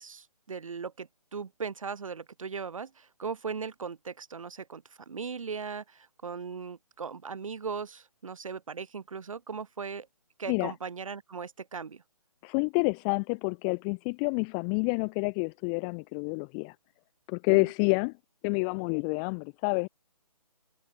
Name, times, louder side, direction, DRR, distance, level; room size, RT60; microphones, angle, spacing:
voice 1, 0.0-10.1 10.4-12.0 17.5-17.7, right 5 dB, 60° right, 5.7 m, -38 dB
voice 2, 12.4-16.7 17.3-18.1 18.4-19.9, left 40 dB or more, 15° left, 1.5 m, -28 dB
hypercardioid pair, 170°, 19 cm